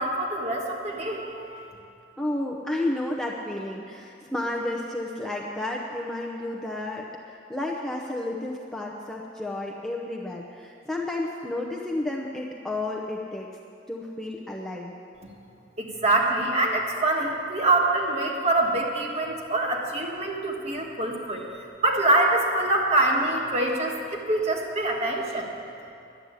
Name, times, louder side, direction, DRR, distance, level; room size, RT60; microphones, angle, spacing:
voice 1, 0.0-1.7 15.8-21.4 21.8-25.5, right 2 dB, 35° right, 0 dB, 1.5 m, -25 dB
voice 2, 2.2-13.5 13.9-14.9, left 1 dB, 5° left, -2 dB, 0.7 m, -31 dB
11.5 x 7.9 x 9.6 m, 2.5 s
head